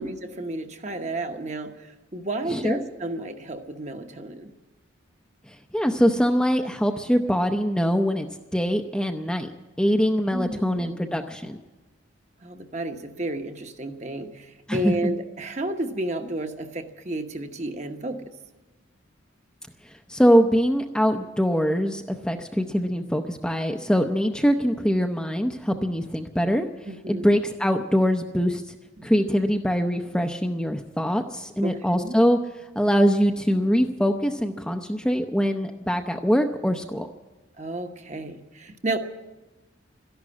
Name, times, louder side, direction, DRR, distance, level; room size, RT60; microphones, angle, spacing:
voice 1, 0.0-4.5 10.3-11.2 12.4-18.3 26.9-27.3 29.0-29.1 31.6-32.1 37.6-39.0, right 1 dB, 35° right, 6 dB, 1.0 m, -32 dB
voice 2, 5.5-9.5 9.8-11.6 14.7-15.1 20.1-26.7 27.1-28.7 29.0-32.4 32.8-37.1, equal, 5° left, 4 dB, 0.6 m, -23 dB
13.5 x 11.5 x 9.7 m, 1.1 s
head